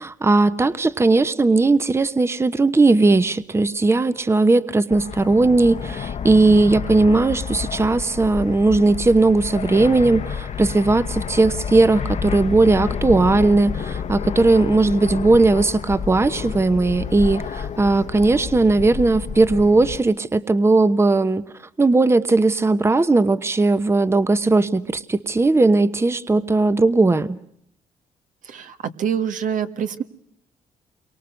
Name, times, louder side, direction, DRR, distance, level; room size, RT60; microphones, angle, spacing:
voice 1, 0.0-21.4 21.8-27.4, right 3 dB, 20° right, 13 dB, 1.0 m, -18 dB
Fixed-wing aircraft airplane, 4.9-20.0, left 7 dB, 60° left, 1.4 m, -30 dB
voice 2, 28.4-30.0, right 8 dB, 70° right, 8 dB, 1.7 m, -26 dB
29.0 x 23.5 x 6.4 m, 0.72 s
cardioid pair, 90°, 14 cm